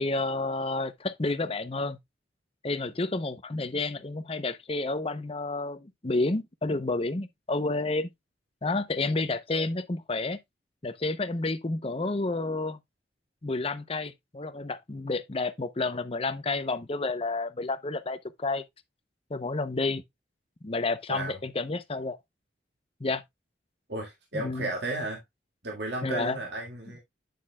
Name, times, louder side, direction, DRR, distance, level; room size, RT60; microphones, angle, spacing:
voice 1, 0.0-2.0 2.6-8.1 8.6-10.4 10.8-12.8 13.4-18.6 19.3-20.0 20.6-22.2 23.0-23.2 24.3-24.7 26.0-26.4, left 3 dB, 30° left, 0.7 m, -30 dB
voice 2, 23.9-25.2 25.6-27.0, right 2 dB, 65° right, 2.0 m, -33 dB
9.3 x 6.5 x 2.3 m
head